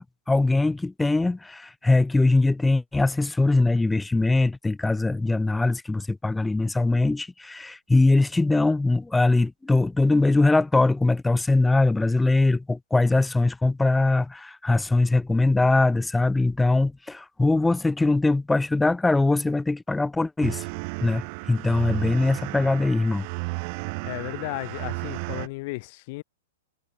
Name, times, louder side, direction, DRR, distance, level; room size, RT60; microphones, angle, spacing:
voice 1, 0.0-20.6 21.0-23.3, left 2 dB, 5° left, 0.5 m, -22 dB
sound 1, 20.4-25.5, right 35 dB, 45° right, 3.7 m, -33 dB
voice 2, 24.0-26.2, left 24 dB, 45° left, 1.6 m, -34 dB
hypercardioid pair, 145°, 0 cm